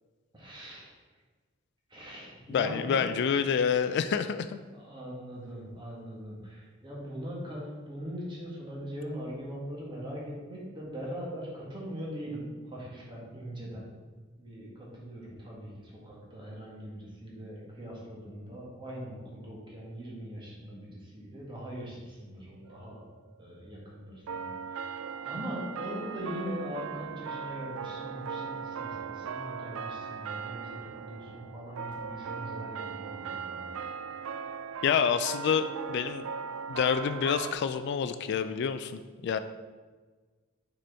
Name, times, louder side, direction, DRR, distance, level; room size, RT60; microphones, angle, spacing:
voice 1, 0.3-0.9 1.9-3.1 3.6-4.1 4.7-13.9 14.4-23.0 23.4-33.7, equal, 25° right, -4 dB, 1.7 m, -41 dB
voice 2, 2.5-4.6 34.8-36.3 36.7-39.4, left 7 dB, 60° left, 10 dB, 0.3 m, -28 dB
sound 1, 22.7-23.6 24.3-37.5, right 6 dB, 75° right, 0.3 m, -39 dB
6.1 x 4.3 x 4.4 m, 1.4 s
head